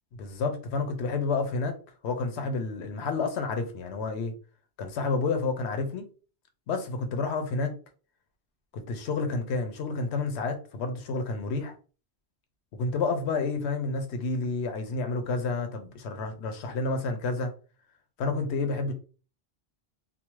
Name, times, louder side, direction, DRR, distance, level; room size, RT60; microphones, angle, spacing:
voice 1, 0.2-1.8 2.0-4.3 4.8-6.0 6.7-7.7 8.7-11.7 12.7-17.5 18.2-18.9, left 3 dB, 90° left, 0.9 m, -30 dB
2.6 x 2.0 x 3.0 m
omnidirectional pair, 1.1 m